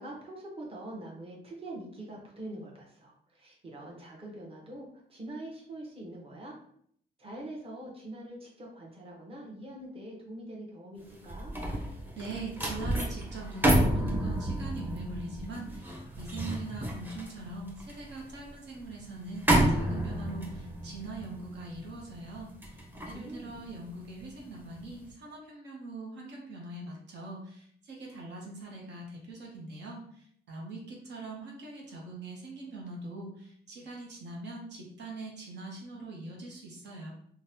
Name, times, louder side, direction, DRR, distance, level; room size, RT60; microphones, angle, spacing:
voice 1, 0.0-6.6 7.2-11.5 23.0-23.6, right 1 dB, 30° right, -2 dB, 0.9 m, -44 dB
sound 1, 11.1-24.4 24.8-25.1, right 1 dB, 10° right, 0.7 m, -31 dB
voice 2, 12.1-37.1, right 2 dB, 75° right, -2 dB, 0.8 m, -42 dB
3.8 x 2.1 x 2.7 m, 0.66 s
cardioid pair, 105°, 18 cm